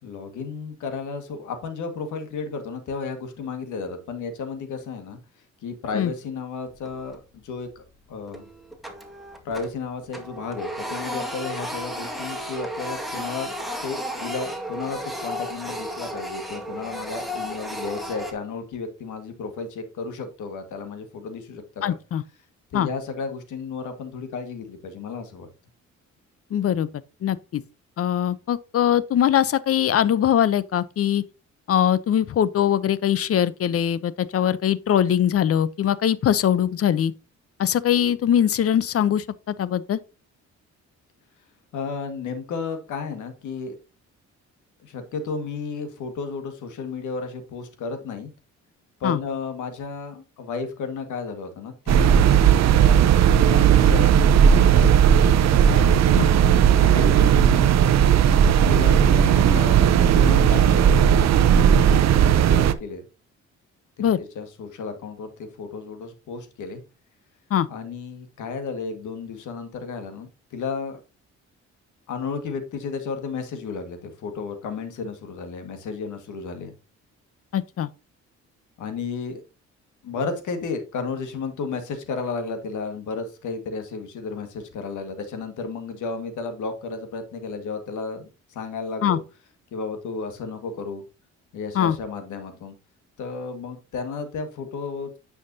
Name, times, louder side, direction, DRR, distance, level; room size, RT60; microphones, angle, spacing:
voice 1, 0.0-5.2 5.6-8.5 9.4-13.5 13.8-22.0 22.7-25.5 41.7-43.8 44.8-48.3 49.0-52.3 52.6-53.1 53.5-54.9 55.6-56.2 56.7-57.7 58.7-63.0 64.1-66.8 67.7-71.0 72.1-76.7 78.8-79.4 80.0-89.2 89.7-91.0 91.5-92.8 93.2-95.2, left 4 dB, 75° left, 1.8 m, -33 dB
Printer, 6.7-7.3 7.7-7.8 8.3-9.8 10.1-18.3, equal, ahead, 1.8 m, -33 dB
voice 2, 21.8-22.2 22.7-22.9 26.5-26.9 27.2-27.6 28.0-31.2 31.7-37.1 37.6-39.2 39.6-40.0 49.0-49.2 56.1-56.3 64.0-64.2 67.5-67.7 77.5-77.9 89.0-89.2 91.7-91.9, left 10 dB, 50° left, 0.7 m, -21 dB
sound 1, 51.9-62.7, right 9 dB, 60° right, 0.7 m, -16 dB
9.4 x 5.8 x 2.7 m
cardioid pair, 90°, 30 cm